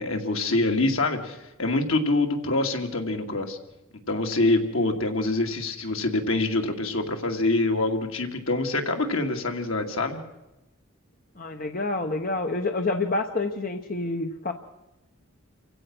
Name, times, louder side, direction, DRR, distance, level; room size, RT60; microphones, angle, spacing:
voice 1, 0.0-3.6 4.1-10.2, left 2 dB, 75° left, 4 dB, 2.4 m, -25 dB
voice 2, 11.4-14.5, left 2 dB, 40° left, 5 dB, 1.0 m, -28 dB
28.0 x 16.0 x 6.2 m, 0.98 s
head